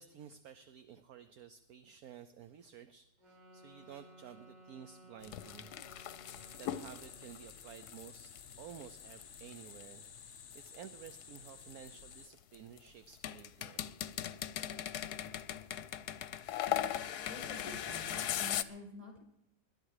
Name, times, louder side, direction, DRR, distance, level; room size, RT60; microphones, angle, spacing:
voice 1, 0.0-5.7 6.6-13.9, right 9 dB, 65° right, 10 dB, 1.2 m, -53 dB
sound 1, 3.2-7.4, right 1 dB, 80° right, 5.0 m, -58 dB
sound 2, 5.2-9.8 10.5-12.8 13.1-18.6, left 11 dB, 70° left, 1.1 m, -39 dB
sound 3, 6.3-12.3, left 7 dB, 50° left, 1.1 m, -54 dB
voice 2, 17.3-19.2, left 1 dB, 20° right, 1 dB, 5.1 m, -49 dB
21.0 x 11.0 x 4.9 m, 0.81 s
omnidirectional pair, 1.9 m